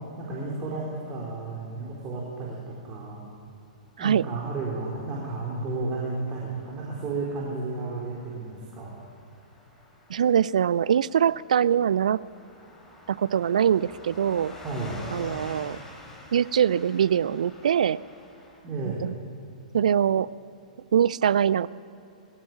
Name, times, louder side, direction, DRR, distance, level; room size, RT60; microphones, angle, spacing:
voice 1, 0.2-3.2 4.0-8.9 14.6-15.0 18.6-19.1, right 3 dB, 25° right, -4 dB, 4.3 m, -32 dB
Car passing by / Truck, 4.4-18.6, left 2 dB, 10° left, 4.7 m, -48 dB
voice 2, 10.1-12.2 13.1-14.5 15.1-15.8 16.3-18.0 18.8-19.1 19.7-20.3 20.9-21.7, right 8 dB, 65° right, 20 dB, 0.5 m, -23 dB
22.0 x 17.0 x 7.4 m, 2.8 s
figure-of-eight pair, 110°, 4 cm